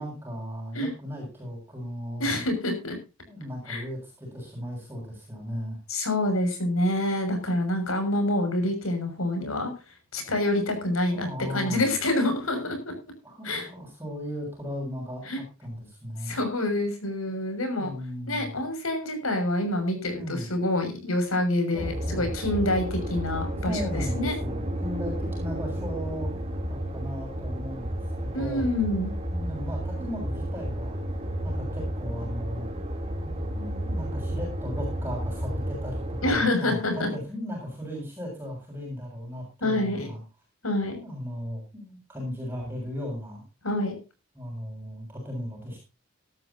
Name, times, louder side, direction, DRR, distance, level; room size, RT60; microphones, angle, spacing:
voice 1, 0.0-2.4 3.3-5.8 11.1-11.8 13.2-16.4 17.8-18.6 20.2-20.5 21.7-22.3 23.7-26.3 26.7-28.7 29.3-31.0 31.4-32.7 33.2-40.2 41.0-43.4 44.4-45.8, equal, 10° right, -2 dB, 7.2 m, -36 dB
voice 2, 2.2-3.0 3.7-3.8 5.9-9.7 10.1-12.9 13.4-13.7 15.2-15.4 16.2-17.9 18.3-24.4 28.3-29.1 36.2-37.1 39.6-40.1 40.6-41.0 43.6-43.9, left 1 dB, 85° left, 6 dB, 6.7 m, -27 dB
sound 1, 21.8-36.4, right 1 dB, 30° right, 3.3 m, -32 dB
18.5 x 13.0 x 2.9 m, 0.30 s
head